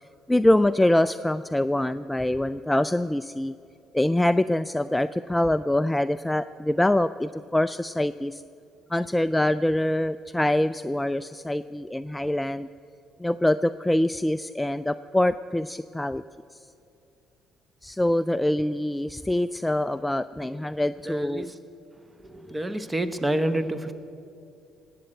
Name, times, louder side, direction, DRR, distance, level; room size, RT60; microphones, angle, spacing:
voice 1, 0.3-3.5 3.9-8.4 8.9-12.7 13.2-16.2 17.8-21.5, left 1 dB, 10° left, 13 dB, 0.4 m, -24 dB
voice 2, 21.1-21.5 22.3-23.9, right 1 dB, 15° right, 11 dB, 1.1 m, -28 dB
19.0 x 7.7 x 8.0 m, 2.6 s
hypercardioid pair, 50°, 0 cm